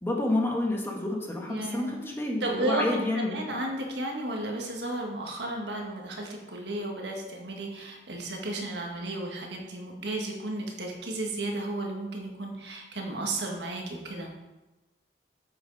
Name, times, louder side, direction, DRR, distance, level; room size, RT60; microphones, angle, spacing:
voice 1, 0.0-3.6, left 1 dB, 15° left, -1 dB, 1.4 m, -29 dB
voice 2, 1.5-1.9 2.4-3.0 3.3-14.3, right 1 dB, 75° right, 1 dB, 1.6 m, -33 dB
8.9 x 7.1 x 4.0 m, 1.1 s
head